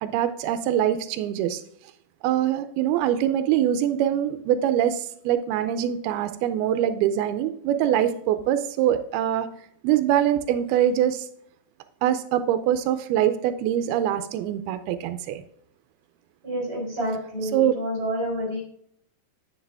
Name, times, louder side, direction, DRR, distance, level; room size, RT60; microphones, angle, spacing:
voice 1, 0.0-1.6 2.2-9.5 9.8-11.3 12.0-15.4 17.5-17.7, right 11 dB, 90° right, 10 dB, 2.6 m, -23 dB
voice 2, 16.4-18.6, equal, 15° right, -1 dB, 4.0 m, -28 dB
9.6 x 6.5 x 3.4 m, 0.67 s
omnidirectional pair, 4.3 m